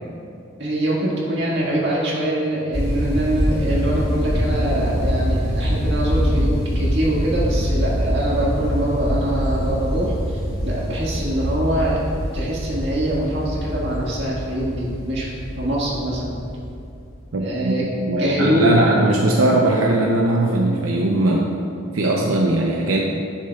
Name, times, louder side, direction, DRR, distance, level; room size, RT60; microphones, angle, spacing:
voice 1, 0.6-12.1 12.3-16.4 17.4-17.8 18.2-19.0, right 1 dB, 55° right, -5 dB, 1.8 m, -23 dB
sound 1, 2.7-17.3, equal, 45° left, 1.2 m, -24 dB
voice 2, 17.3-21.6 21.9-23.0, right 2 dB, 85° right, -2 dB, 0.6 m, -19 dB
11.0 x 6.6 x 2.4 m, 2.5 s
head